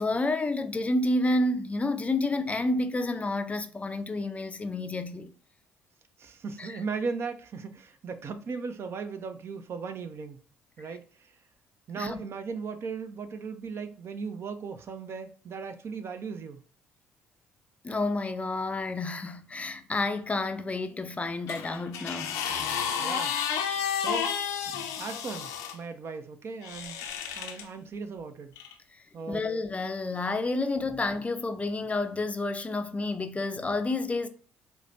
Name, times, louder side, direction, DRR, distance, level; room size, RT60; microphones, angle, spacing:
voice 1, 0.0-5.3 6.6-6.8 12.0-12.2 17.8-22.4 24.7-24.9 29.3-34.3, left 2 dB, 25° left, 0.4 m, -30 dB
voice 2, 6.2-10.4 10.8-11.3 11.9-16.6 23.0-23.3 24.0-24.3 25.0-27.0 27.4-28.5 29.1-29.5, right 5 dB, 45° right, 0.5 m, -37 dB
sound 1, 21.5-25.8 26.6-27.6 28.6-28.7, left 8 dB, 75° left, 0.5 m, -31 dB
4.7 x 2.1 x 2.6 m
hypercardioid pair, 55°, 6 cm